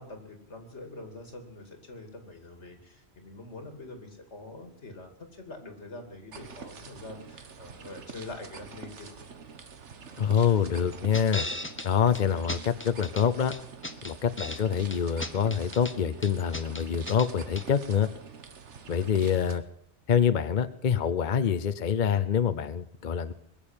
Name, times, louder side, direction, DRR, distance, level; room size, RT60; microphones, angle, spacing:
voice 1, 0.0-9.3, left 2 dB, 80° left, 5 dB, 2.9 m, -45 dB
sound 1, 6.3-19.6, right 5 dB, 90° right, 1.5 m, -46 dB
voice 2, 10.2-11.4 11.8-13.5 14.0-18.1 18.9-19.6 20.1-23.3, left 7 dB, 50° left, 11 dB, 0.8 m, -26 dB
sound 2, 11.1-11.9 12.1-12.2 12.5-13.2 13.5-14.6 14.9-15.9 16.2-17.3 17.6-17.7, left 2 dB, 10° left, 0.7 m, -36 dB
21.0 x 7.2 x 8.8 m, 0.72 s
omnidirectional pair, 1.2 m